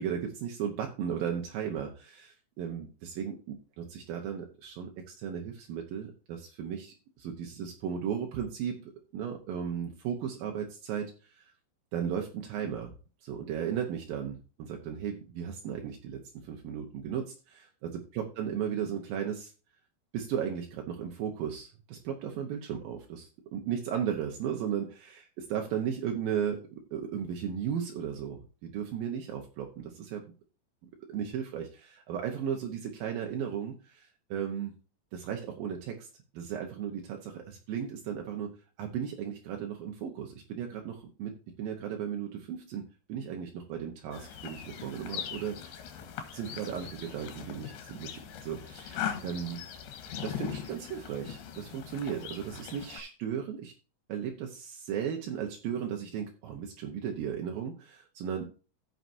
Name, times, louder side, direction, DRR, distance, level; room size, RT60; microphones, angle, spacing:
voice 1, 0.0-11.5 11.9-12.9 13.2-19.5 20.1-26.6 26.9-30.2 31.1-34.7 35.1-36.1 36.3-38.5 38.8-42.8 43.1-45.8 46.3-48.1 48.4-49.6 50.2-53.7 54.1-58.5, right 8 dB, 75° right, 2 dB, 2.8 m, -35 dB
sound 1, 44.1-53.0, left 8 dB, 90° left, 3.4 m, -40 dB
15.5 x 5.9 x 2.7 m, 0.35 s
omnidirectional pair, 4.3 m